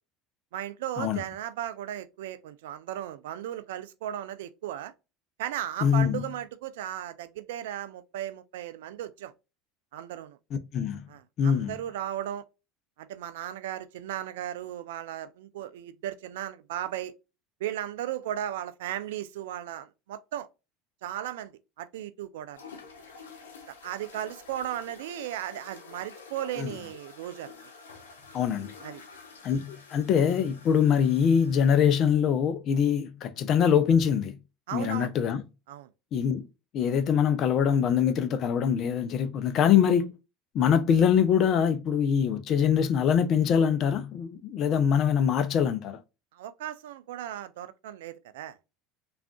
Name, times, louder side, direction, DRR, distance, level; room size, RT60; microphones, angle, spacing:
voice 1, 0.5-4.9 5.4-9.3 9.9-10.4 11.1-12.4 13.0-17.1 17.6-20.5 21.0-21.5 21.8-22.6 23.8-27.7 28.8-29.0 34.7-35.1 35.7-35.9 46.3-48.6, right 12 dB, 80° right, 0.3 m, -36 dB
voice 2, 5.8-6.2 10.5-11.0 11.4-11.7 26.6-26.7 28.3-28.7 29.4-34.3 34.7-35.4 36.1-36.5 36.7-40.1 40.5-46.0, left 8 dB, 50° left, 0.5 m, -24 dB
sound 1, 22.5-32.2, left 5 dB, 90° left, 0.8 m, -49 dB
3.5 x 2.4 x 2.2 m
hypercardioid pair, 80°, 0 cm